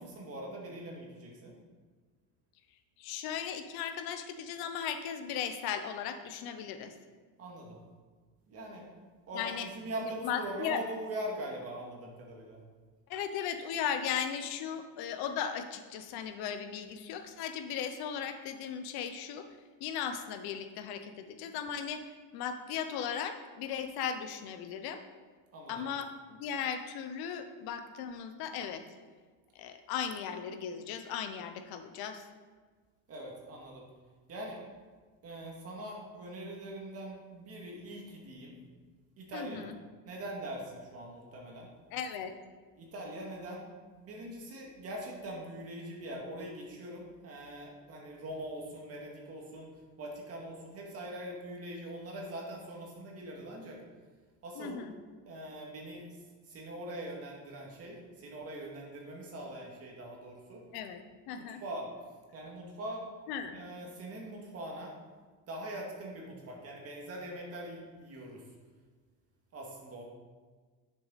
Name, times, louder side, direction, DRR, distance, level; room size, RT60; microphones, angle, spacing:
voice 1, 0.0-1.5 7.4-7.8 8.5-8.9 9.3-12.6 25.5-25.7 33.1-33.8 34.3-34.6 35.2-38.6 39.2-39.6 40.1-41.7 42.8-43.6 43.9-49.7 50.0-53.8 54.4-54.8 55.3-56.0 56.4-60.6 61.3-61.9 62.3-63.1 63.5-64.9 65.5-68.4 69.5-70.0, right 1 dB, 35° right, -1 dB, 2.1 m, -42 dB
voice 2, 3.0-6.9 9.3-9.7 10.0-10.8 13.1-19.5 19.8-22.0 22.3-25.0 25.7-28.8 29.5-32.3 39.3-39.8 41.9-42.3 54.6-54.9 60.7-61.0 61.3-61.6 63.3-63.6, left 8 dB, 65° left, 8 dB, 0.9 m, -37 dB
10.0 x 6.8 x 4.1 m, 1.5 s
cardioid pair, 155°, 40 cm